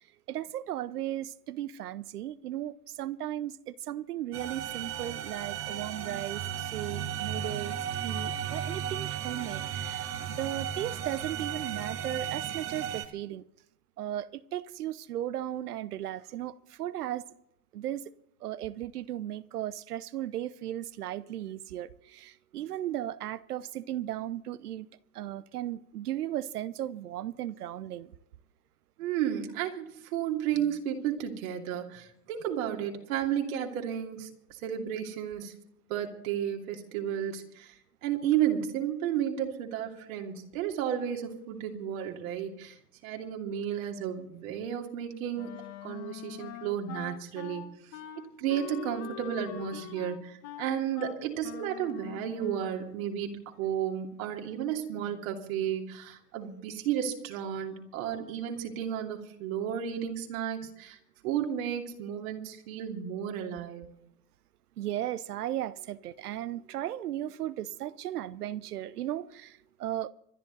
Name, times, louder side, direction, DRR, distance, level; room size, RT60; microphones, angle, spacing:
voice 1, 0.3-7.8 8.0-10.1 10.4-13.4 14.0-17.2 17.7-18.0 18.4-24.9 25.1-28.1 49.7-49.8 64.8-70.1, right 12 dB, 75° right, 0.9 m, -36 dB
sound 1, 4.3-13.0, right 9 dB, 30° right, 1.5 m, -35 dB
voice 2, 29.0-35.5 35.9-37.7 38.0-42.7 43.0-47.7 48.2-61.0 61.2-63.9, right 9 dB, 60° right, 2.8 m, -33 dB
Wind instrument woodwind instrument, 45.3-52.9, left 12 dB, 30° left, 1.3 m, -44 dB
26.0 x 10.5 x 4.0 m
hypercardioid pair, 110°, 47 cm